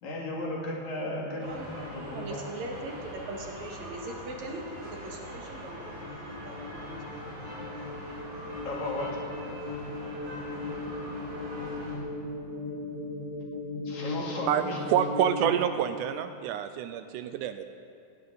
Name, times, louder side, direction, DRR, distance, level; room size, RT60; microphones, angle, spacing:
voice 1, 0.0-2.4 8.6-9.2 13.8-14.8, left 1 dB, 65° left, -2 dB, 3.4 m, -35 dB
sound 1, 1.4-12.0, right 1 dB, 40° right, 5.7 m, -43 dB
voice 2, 2.1-6.9, right 2 dB, 60° right, 0 dB, 3.0 m, -40 dB
sound 2, 5.0-15.6, left 2 dB, 45° left, 2.0 m, -38 dB
voice 3, 14.5-17.6, right 10 dB, 80° right, 9 dB, 2.0 m, -28 dB
18.0 x 16.5 x 4.0 m, 2.5 s
omnidirectional pair, 3.8 m